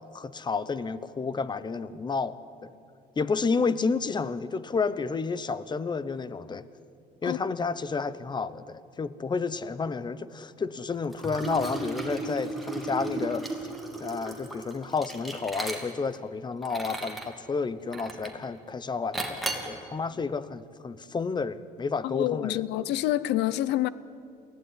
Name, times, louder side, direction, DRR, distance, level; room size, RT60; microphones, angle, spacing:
voice 1, 0.0-2.7 3.2-6.7 7.2-13.5 14.0-22.6, left 4 dB, 25° left, 0.9 m, -31 dB
Liquid, 11.1-16.2 16.6-17.3 17.9-18.4 19.1-19.7, right 2 dB, ahead, 3.0 m, -35 dB
voice 2, 22.0-23.9, left 14 dB, 85° left, 0.7 m, -27 dB
23.0 x 16.0 x 9.9 m
cardioid pair, 110°, 17 cm